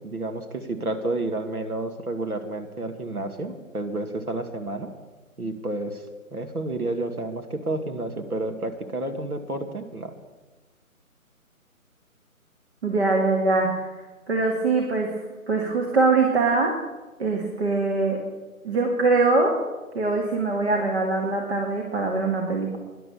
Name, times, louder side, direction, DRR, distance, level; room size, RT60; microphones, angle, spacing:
voice 1, 0.0-4.9 5.4-6.0 6.3-10.1, right 2 dB, 80° right, 5 dB, 2.3 m, -30 dB
voice 2, 12.8-13.8 14.3-15.1 15.5-16.8 17.2-18.2 18.6-19.6 19.9-22.8, right 3 dB, 45° right, 1 dB, 2.2 m, -22 dB
13.0 x 11.0 x 7.0 m, 1.2 s
figure-of-eight pair, 155°, 43 cm